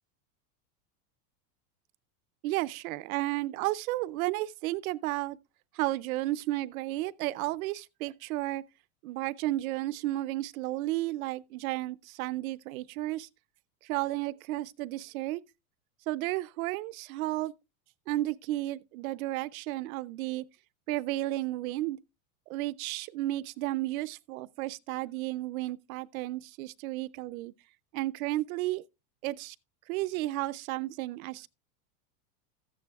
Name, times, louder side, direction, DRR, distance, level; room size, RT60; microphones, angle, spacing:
voice 1, 2.4-5.4 5.7-8.6 9.0-13.3 13.8-15.4 16.1-17.5 18.1-20.4 20.9-22.0 22.5-27.5 27.9-28.8 29.2-29.6 29.9-31.5, right 17 dB, 65° right, 0.6 m, -33 dB
14.0 x 9.5 x 2.3 m
supercardioid pair, 165°, 45 cm